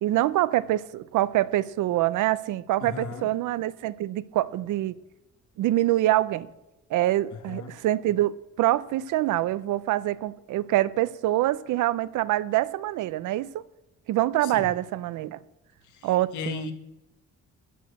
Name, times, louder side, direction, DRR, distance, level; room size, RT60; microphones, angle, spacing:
voice 1, 0.0-4.9 5.6-6.5 6.9-13.6 14.1-15.4 16.0-16.7, right 15 dB, 85° right, 0.6 m, -25 dB
voice 2, 2.8-3.3 7.5-7.7 14.4-14.7 15.9-16.7, left 5 dB, 75° left, 1.9 m, -36 dB
13.0 x 6.3 x 8.6 m
cardioid pair, 90°, 30 cm